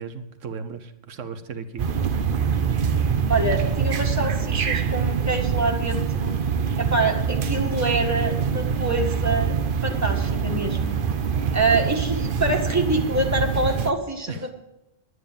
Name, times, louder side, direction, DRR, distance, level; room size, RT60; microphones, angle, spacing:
voice 1, 0.0-1.9 14.3-14.5, right 5 dB, 90° right, 8 dB, 1.3 m, -35 dB
sound 1, 1.8-13.9, right 6 dB, 50° right, 0.9 m, -24 dB
voice 2, 3.3-6.3 6.8-11.0 11.5-14.5, right 2 dB, 15° right, 1 dB, 1.8 m, -25 dB
11.0 x 9.6 x 6.9 m, 0.92 s
omnidirectional pair, 1.2 m